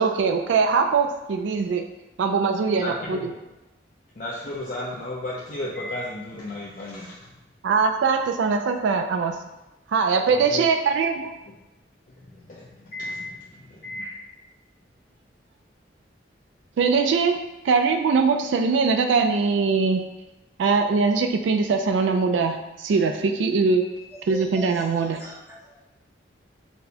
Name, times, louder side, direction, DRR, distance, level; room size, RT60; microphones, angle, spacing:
voice 1, 0.0-1.8 2.2-3.3 7.6-9.3 9.9-11.3 16.8-20.0 20.6-23.8 24.3-25.2, right 4 dB, 80° right, 5 dB, 0.3 m, -22 dB
voice 2, 2.7-3.3 4.2-7.3 10.2-10.6 12.2-14.1, left 1 dB, 45° left, -6 dB, 0.4 m, -34 dB
voice 3, 24.3-24.7 25.0-25.8, left 1 dB, 15° right, -5 dB, 0.7 m, -40 dB
4.2 x 2.1 x 2.7 m, 1.0 s
head